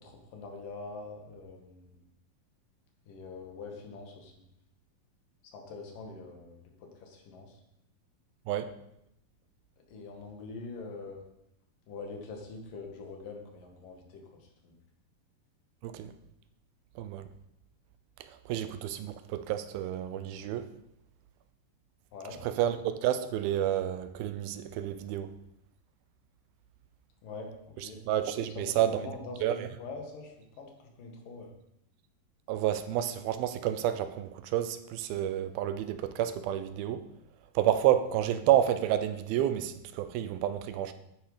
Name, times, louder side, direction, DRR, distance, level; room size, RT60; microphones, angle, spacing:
voice 1, 0.0-1.9 3.1-4.3 5.5-7.6 9.9-11.2 11.9-14.7 22.1-22.4 27.2-28.0 28.6-31.5, left 3 dB, 70° left, 3.5 m, -44 dB
voice 2, 17.0-17.3 18.2-20.7 22.4-25.3 27.8-29.0 29.4-29.7 32.5-37.1 37.6-40.9, right 11 dB, 90° right, 2.7 m, -30 dB
12.0 x 9.4 x 5.1 m
omnidirectional pair, 4.2 m